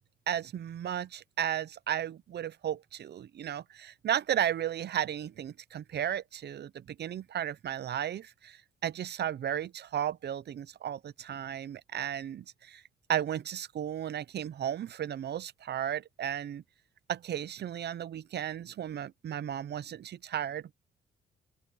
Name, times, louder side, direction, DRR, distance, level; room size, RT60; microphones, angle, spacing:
voice 1, 0.3-12.8 13.1-16.6 17.1-20.7, right 10 dB, 55° right, 0.8 m, -34 dB
open air
cardioid pair, 90°, 20 cm